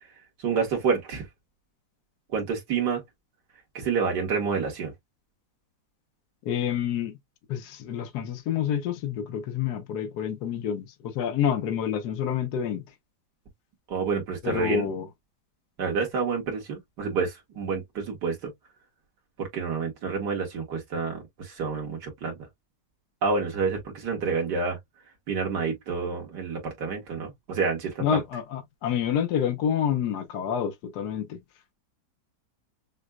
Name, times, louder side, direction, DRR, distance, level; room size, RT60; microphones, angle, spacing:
voice 1, 0.4-1.2 2.3-3.0 3.7-4.9 13.9-14.9 15.8-18.5 19.4-22.3 23.2-24.8 25.3-28.2, right 5 dB, 80° right, 2.3 m, -28 dB
voice 2, 6.4-7.2 7.5-12.8 14.4-15.1 28.0-31.4, left 8 dB, 70° left, 1.4 m, -28 dB
6.2 x 2.2 x 2.3 m
omnidirectional pair, 1.8 m